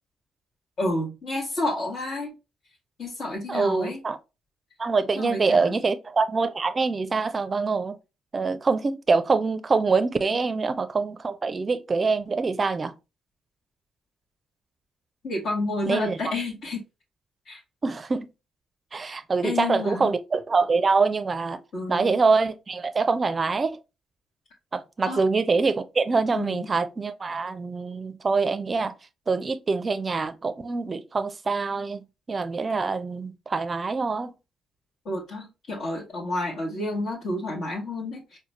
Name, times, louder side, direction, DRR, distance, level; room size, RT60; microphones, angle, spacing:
voice 1, 0.8-2.3 3.0-4.0 5.2-5.8 10.3-10.4 15.2-16.8 17.5-17.6 19.4-20.1 21.7-22.2 25.0-25.3 26.3-26.7 35.0-38.4, left 2 dB, 55° left, 1.1 m, -30 dB
voice 2, 3.5-4.2 4.8-8.0 8.3-12.9 15.9-16.2 17.8-18.3 18.9-21.6 21.9-23.8 24.7-28.9 29.3-34.3, right 4 dB, 35° right, 0.5 m, -25 dB
4.9 x 2.2 x 3.0 m
figure-of-eight pair, 40°, 0 cm